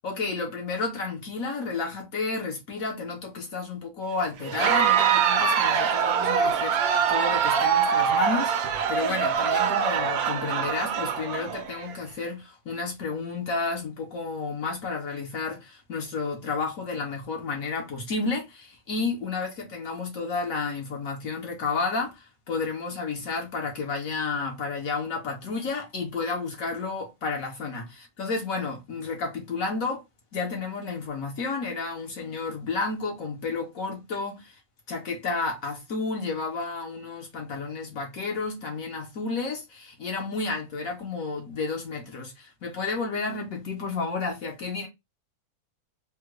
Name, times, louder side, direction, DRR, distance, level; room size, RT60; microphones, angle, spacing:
voice 1, 0.0-30.0 30.3-34.6 34.9-44.9, left 4 dB, 65° left, 1.1 m, -31 dB
Crowd, 4.4-11.9, right 7 dB, 70° right, 1.0 m, -24 dB
3.5 x 2.1 x 3.0 m
omnidirectional pair, 1.7 m